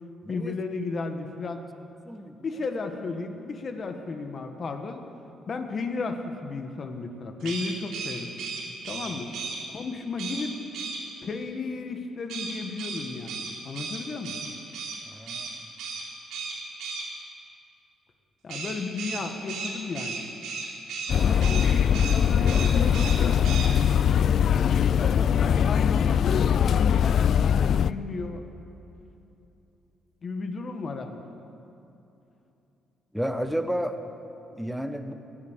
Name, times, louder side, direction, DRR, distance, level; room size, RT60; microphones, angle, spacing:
voice 1, 0.3-1.6 2.4-5.0 5.5-8.3 8.8-9.3 9.7-10.6 11.2-14.4 18.4-20.2 21.2-23.5 24.5-28.5 30.2-31.3, left 3 dB, 45° left, 6 dB, 1.5 m, -34 dB
sound 1, 7.4-9.6 10.2-10.4 10.7-11.0 12.3-15.0 15.3-15.5 15.8-16.0 16.3-17.0 18.5-21.1 21.4-21.7 21.9-22.2 22.5-23.2 23.4-23.7, right 4 dB, 85° right, 3.5 m, -35 dB
voice 2, 15.1-15.5 33.1-34.0 34.5-35.1, equal, ahead, 7 dB, 1.1 m, -31 dB
sound 2, 21.1-27.9, left 8 dB, 60° left, 0.3 m, -21 dB
15.5 x 10.5 x 8.1 m, 2.9 s
cardioid pair, 90°, 0 cm